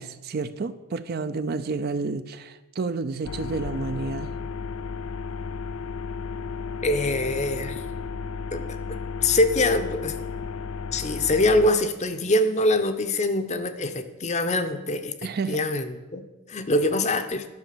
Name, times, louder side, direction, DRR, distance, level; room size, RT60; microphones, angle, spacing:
voice 1, 0.0-4.4 15.2-15.6, right 4 dB, 45° right, 12 dB, 0.4 m, -30 dB
sound 1, 3.2-11.7, left 5 dB, 70° left, 0.5 m, -33 dB
voice 2, 6.8-7.8 8.5-10.2 10.9-16.2 16.5-17.5, left 1 dB, 30° left, 9 dB, 0.7 m, -24 dB
10.5 x 6.2 x 6.6 m, 1.1 s
head